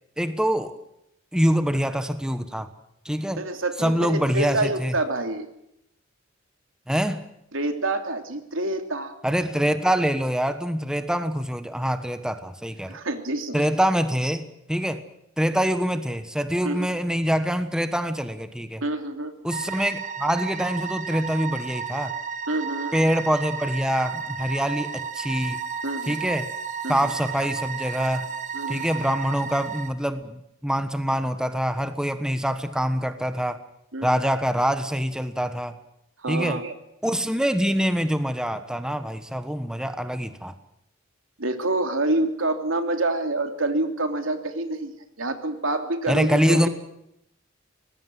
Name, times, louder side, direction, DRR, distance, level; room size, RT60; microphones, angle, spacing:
voice 1, 0.2-0.8 1.3-2.7 3.0-3.4 3.8-4.9 6.9-7.2 9.2-13.0 13.5-15.0 15.4-18.8 19.4-22.1 22.9-25.6 26.1-26.5 26.9-28.2 28.7-33.6 34.0-35.7 36.3-36.6 37.0-40.5 46.1-46.7, equal, 5° right, 9 dB, 1.3 m, -25 dB
voice 2, 3.4-5.5 7.5-9.2 12.9-13.6 16.6-16.9 18.8-19.3 22.5-22.9 25.8-26.2 26.8-27.1 28.5-28.9 33.9-34.2 36.2-36.7 41.4-44.9 45.2-46.7, right 2 dB, 75° right, 7 dB, 3.0 m, -27 dB
sound 1, 19.5-29.9, right 6 dB, 40° right, 2.1 m, -33 dB
25.0 x 20.0 x 7.8 m, 0.80 s
head